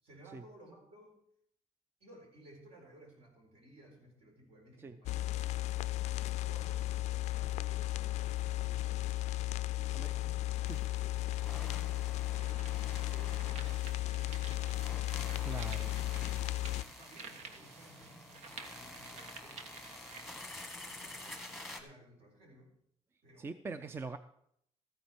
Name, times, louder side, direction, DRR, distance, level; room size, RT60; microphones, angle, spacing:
voice 1, 0.0-1.2 2.0-9.1 9.8-15.9 16.2-20.5 20.8-22.7 23.2-23.9, right 1 dB, 60° right, 1 dB, 4.3 m, -59 dB
sound 1, 5.1-16.8, left 16 dB, 90° left, 0.4 m, -35 dB
sound 2, 10.3-21.8, left 1 dB, ahead, 1.4 m, -50 dB
sound 3, 12.0-20.5, right 4 dB, 80° right, 1.3 m, -52 dB
voice 2, 15.4-15.9 23.4-24.2, right 4 dB, 20° right, 10 dB, 0.4 m, -42 dB
14.0 x 9.6 x 4.5 m, 0.70 s
cardioid pair, 170°, 11 cm